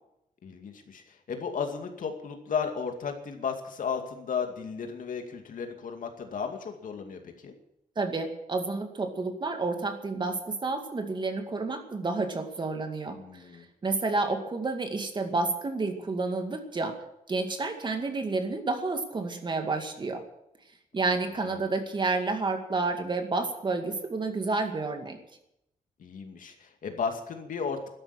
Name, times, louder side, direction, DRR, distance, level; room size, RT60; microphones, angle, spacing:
voice 1, 0.4-1.0 1.3-7.5 13.1-13.7 26.0-27.9, left 6 dB, 70° left, 5 dB, 2.4 m, -34 dB
voice 2, 8.0-13.4 13.8-16.9 17.3-20.2 20.9-25.2, right 3 dB, 35° right, 6 dB, 2.2 m, -30 dB
12.5 x 11.0 x 8.8 m, 0.81 s
wide cardioid pair, 150°, 14 cm